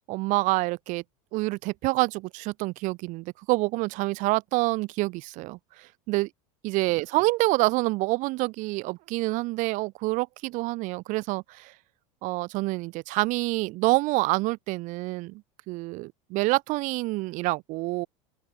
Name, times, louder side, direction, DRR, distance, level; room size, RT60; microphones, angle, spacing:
voice 1, 0.1-1.0 1.3-5.6 6.1-6.3 6.6-11.7 12.2-18.1, right 22 dB, 50° right, 0.4 m, -27 dB
open air
supercardioid pair, 125°, 17 cm